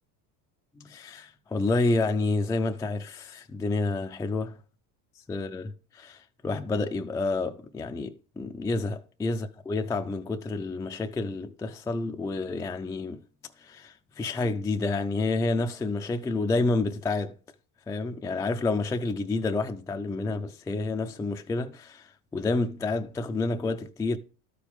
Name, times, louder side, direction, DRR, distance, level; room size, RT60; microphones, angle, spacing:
voice 1, 0.8-4.5 5.3-6.2 6.4-13.2 13.6-17.3 17.9-24.2, left 3 dB, 10° left, 0.4 m, -29 dB
12.5 x 5.0 x 3.5 m
cardioid pair, 125°, 44 cm